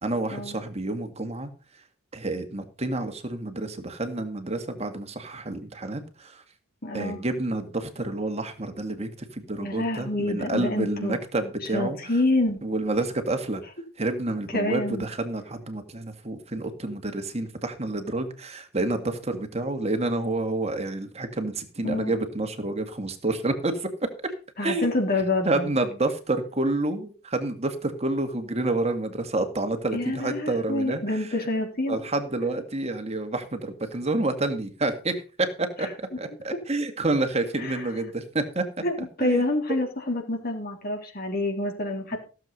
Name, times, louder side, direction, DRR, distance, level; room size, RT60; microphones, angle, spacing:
voice 1, 0.0-1.5 2.1-6.4 6.9-12.0 12.6-13.6 14.0-24.1 24.6-24.9 25.5-31.0 31.9-35.9 36.2-38.7 39.2-39.4, right 2 dB, 30° right, 7 dB, 2.0 m, -29 dB
voice 2, 6.8-7.2 9.6-11.2 11.6-12.6 14.5-15.1 21.8-22.1 24.6-25.7 29.9-32.0 35.8-35.9 36.5-36.6 37.6-37.9 38.8-42.2, left 2 dB, 45° left, 2 dB, 3.7 m, -27 dB
16.0 x 7.7 x 5.4 m, 0.36 s
head